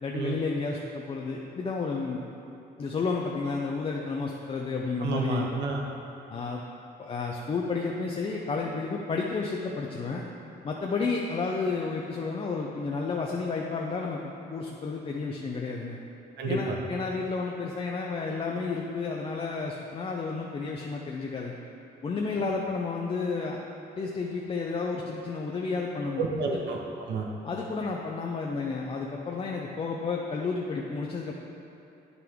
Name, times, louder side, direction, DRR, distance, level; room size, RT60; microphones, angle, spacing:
voice 1, 0.0-2.2 2.8-5.5 6.3-6.6 7.0-10.3 10.6-16.0 16.5-21.5 22.0-23.6 24.0-26.2 27.4-31.3, left 4 dB, 30° left, -1 dB, 0.6 m, -31 dB
voice 2, 5.0-5.9 16.4-16.6 26.2-27.3, right 3 dB, 75° right, 1 dB, 1.0 m, -30 dB
9.5 x 5.9 x 3.6 m, 2.9 s
cardioid pair, 120°, 18 cm